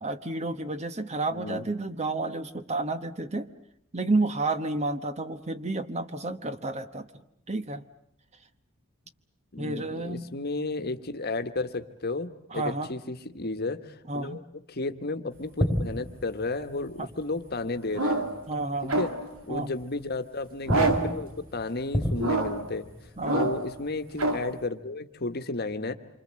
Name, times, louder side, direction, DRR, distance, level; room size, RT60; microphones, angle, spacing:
voice 1, 0.0-3.5 3.9-7.1 7.5-7.8 9.6-10.2 12.5-12.9 14.1-14.4 17.0-17.1 18.5-19.0 19.5-19.7 23.2-23.5, right 2 dB, 30° right, 10 dB, 1.0 m, -30 dB
voice 2, 1.3-1.6 9.5-14.4 14.7-18.3 19.0-19.1 19.5-22.9 23.3-25.9, left 3 dB, 50° left, 8 dB, 1.3 m, -33 dB
sound 1, 15.4-18.3 18.6-18.8 19.4-20.1 20.5-24.7, equal, 10° right, 3.3 m, -33 dB
sound 2, 17.9-18.5 18.9-19.4 20.7-21.2 22.2-22.7 23.2-23.8 24.2-24.5, right 2 dB, 85° right, 2.3 m, -27 dB
27.5 x 25.0 x 7.6 m, 0.77 s
head